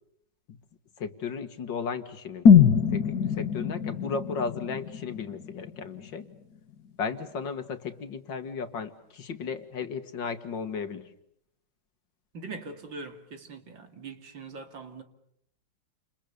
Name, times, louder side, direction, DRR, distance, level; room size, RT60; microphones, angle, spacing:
voice 1, 1.0-2.5 2.9-6.3 7.0-11.1, left 5 dB, 80° left, 2.4 m, -35 dB
sound 1, 2.5-6.4 6.7-6.8, left 7 dB, 60° left, 1.8 m, -22 dB
voice 2, 12.3-15.0, right 4 dB, 85° right, 3.3 m, -42 dB
29.5 x 28.5 x 6.9 m
omnidirectional pair, 2.0 m